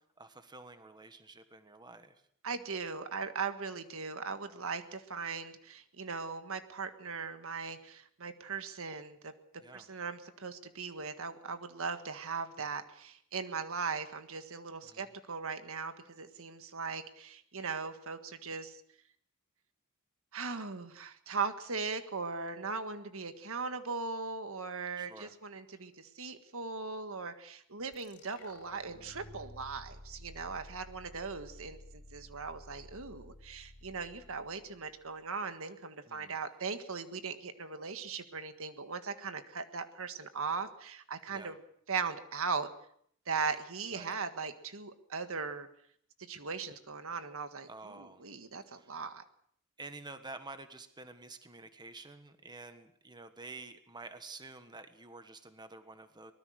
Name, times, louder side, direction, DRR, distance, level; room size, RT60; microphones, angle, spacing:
voice 1, 0.2-2.2 9.6-9.9 14.8-15.1 25.0-25.3 36.0-36.4 41.3-41.5 43.4-43.6 43.9-44.1 47.7-48.3 48.6-49.0 49.8-56.3, right 3 dB, 20° right, 9 dB, 1.5 m, -49 dB
voice 2, 2.4-9.3 9.7-18.8 20.3-41.6 41.9-42.7 43.3-45.7 46.2-49.2, right 5 dB, 70° right, 9 dB, 1.6 m, -39 dB
sound 1, 27.9-35.2, left 1 dB, 80° left, 3.2 m, -53 dB
24.0 x 20.0 x 6.5 m, 0.64 s
head